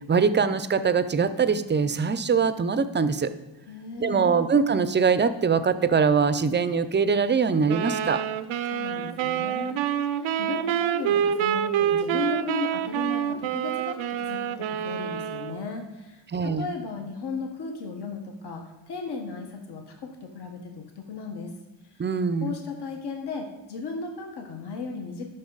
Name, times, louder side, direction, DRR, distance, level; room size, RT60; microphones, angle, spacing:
voice 1, 0.1-3.3 4.0-8.2 16.3-16.7 22.0-22.6, right 5 dB, 25° right, 13 dB, 0.5 m, -23 dB
voice 2, 3.7-4.4 8.7-21.5 21.9-22.0 22.4-25.3, left 4 dB, 60° left, 3 dB, 1.3 m, -35 dB
sound 1, 7.7-15.7, right 9 dB, 85° right, 0.6 m, -27 dB
12.5 x 5.5 x 3.9 m, 1.0 s
cardioid pair, 105°, 46 cm